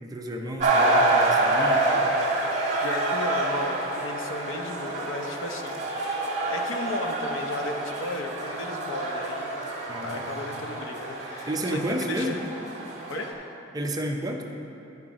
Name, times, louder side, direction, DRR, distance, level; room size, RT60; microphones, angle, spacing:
voice 1, 0.0-2.1 9.9-10.4 11.5-12.4 13.7-14.4, right 1 dB, 20° right, 2 dB, 0.6 m, -31 dB
sound 1, 0.6-13.3, right 2 dB, 40° right, 1.4 m, -27 dB
voice 2, 2.8-9.6 10.0-12.4 13.1-13.4, left 2 dB, 85° left, 4 dB, 0.7 m, -35 dB
11.0 x 4.7 x 5.0 m, 3.0 s
head